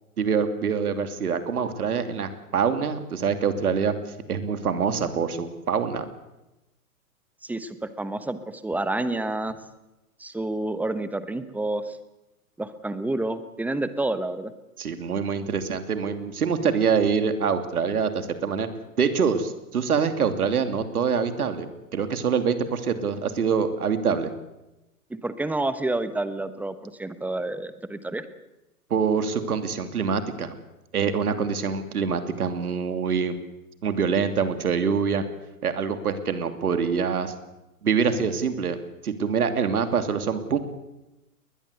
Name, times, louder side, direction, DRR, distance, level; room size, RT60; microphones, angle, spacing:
voice 1, 0.2-6.1 14.8-18.7 19.0-24.3 28.9-30.6 30.9-33.3 33.8-35.2 35.6-37.3 37.8-38.8 39.0-40.6, right 6 dB, 75° right, 9 dB, 3.0 m, -25 dB
voice 2, 7.4-9.6 10.2-12.0 12.6-14.5 25.1-28.3, right 2 dB, 5° right, 12 dB, 1.1 m, -29 dB
21.0 x 20.5 x 8.2 m, 0.98 s
hypercardioid pair, 125°, 45 cm